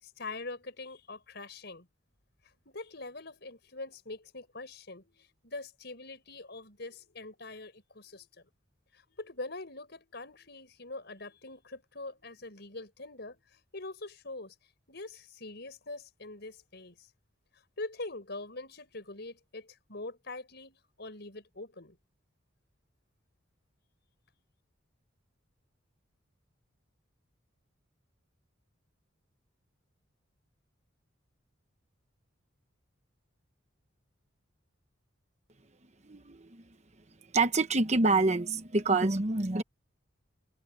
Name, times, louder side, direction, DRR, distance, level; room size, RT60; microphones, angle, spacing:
voice 1, 0.0-1.9 2.7-8.5 8.9-13.4 13.7-14.5 14.9-17.0 17.8-22.0, left 2 dB, 55° left, 6.0 m, -43 dB
voice 2, 36.1-36.6 37.3-39.6, right 3 dB, 35° right, 1.1 m, -27 dB
head